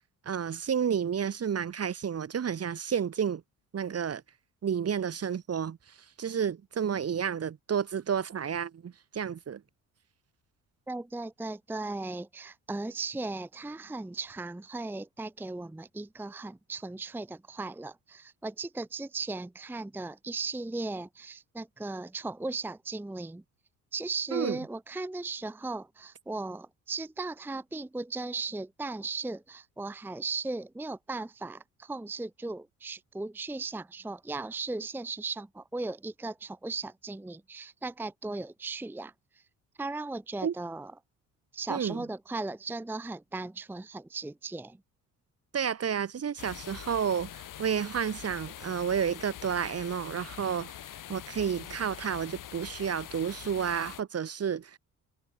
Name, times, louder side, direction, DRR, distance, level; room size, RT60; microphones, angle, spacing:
voice 1, 0.2-3.4 3.7-4.2 4.6-5.8 6.2-9.6 24.3-24.6 40.4-40.5 41.7-42.0 45.5-50.7 51.1-54.8, right 7 dB, 35° right, 1.2 m, -31 dB
voice 2, 10.9-23.4 23.9-39.1 39.8-40.9 41.5-44.8, right 3 dB, 5° right, 0.8 m, -37 dB
sound 1, 46.4-54.0, left 12 dB, 45° left, 1.1 m, -44 dB
figure-of-eight pair, 45°, 45 cm